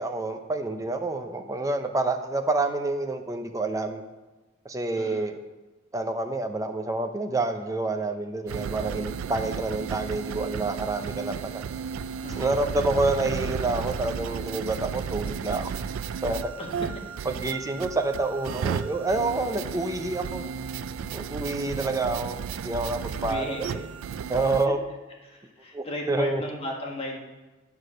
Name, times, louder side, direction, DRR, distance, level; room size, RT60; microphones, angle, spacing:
voice 1, 0.0-4.0 4.6-5.4 5.9-11.6 12.3-15.7 16.2-16.5 17.4-20.5 21.1-23.9 24.3-24.8 25.7-26.4, right 2 dB, 15° right, 6 dB, 0.6 m, -28 dB
voice 2, 4.9-5.3 12.2-12.6 16.6-16.7 23.2-23.6 24.6-24.7 25.2-27.2, left 1 dB, 30° left, -1 dB, 1.6 m, -35 dB
sound 1, 8.5-24.7, right 7 dB, 80° right, 0.3 m, -34 dB
8.6 x 4.7 x 6.4 m, 1.2 s
head